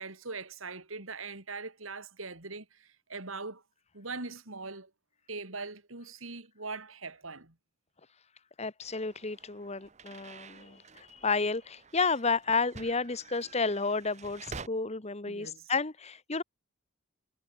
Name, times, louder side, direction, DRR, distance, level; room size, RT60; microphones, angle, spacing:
voice 1, 0.0-3.6 3.9-4.9 5.3-7.5 15.3-15.7, right 3 dB, 75° right, 4.0 m, -41 dB
voice 2, 8.6-16.4, left 4 dB, 30° left, 1.3 m, -31 dB
sound 1, 8.8-14.7, right 4 dB, 35° right, 1.0 m, -49 dB
head